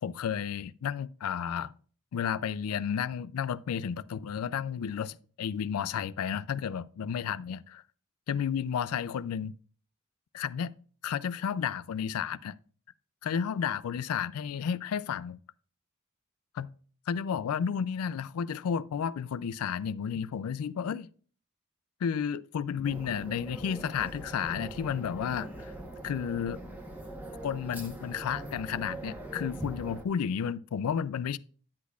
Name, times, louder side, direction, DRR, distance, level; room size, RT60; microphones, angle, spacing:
voice 1, 0.0-1.7 2.1-7.8 8.3-9.5 10.3-10.7 11.0-12.6 13.2-15.4 16.6-16.7 17.1-21.1 22.0-25.7 26.0-26.6 27.4-31.4, left 7 dB, 85° left, 0.3 m, -32 dB
sound 1, 22.8-30.0, right 1 dB, 10° right, 0.9 m, -42 dB
9.6 x 8.2 x 2.3 m
head